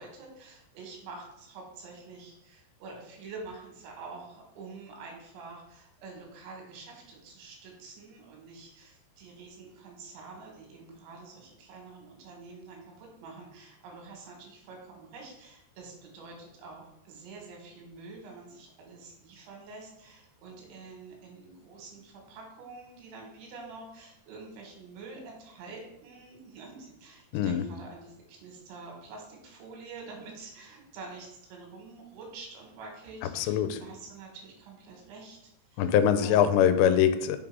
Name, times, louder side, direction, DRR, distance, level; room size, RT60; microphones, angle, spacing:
voice 1, 0.0-35.8 36.2-36.6, right 3 dB, 90° right, 0 dB, 3.9 m, -47 dB
voice 2, 27.3-27.6 33.2-33.8 35.8-37.4, left 9 dB, 85° left, 10 dB, 2.7 m, -23 dB
7.0 x 3.7 x 4.7 m, 0.87 s
omnidirectional pair, 5.0 m